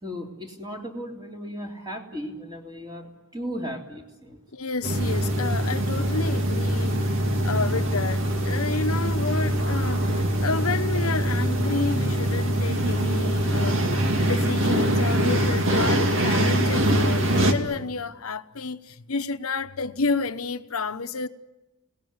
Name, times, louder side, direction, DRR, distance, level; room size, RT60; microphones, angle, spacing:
voice 1, 0.0-4.4, equal, 20° right, 3.4 m, -36 dB
voice 2, 4.5-13.8 14.1-21.3, left 4 dB, 75° left, 1.0 m, -30 dB
sound 1, 4.8-17.5, right 1 dB, 60° right, 2.4 m, -23 dB
27.5 x 19.0 x 9.7 m
head